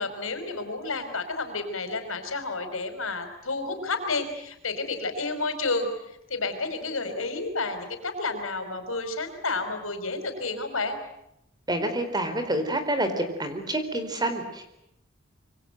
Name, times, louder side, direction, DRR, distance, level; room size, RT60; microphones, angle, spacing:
voice 1, 0.0-11.0, left 3 dB, 90° left, 8 dB, 5.3 m, -31 dB
voice 2, 11.7-14.6, right 1 dB, 20° right, 8 dB, 4.4 m, -28 dB
27.0 x 24.5 x 8.0 m, 0.81 s
head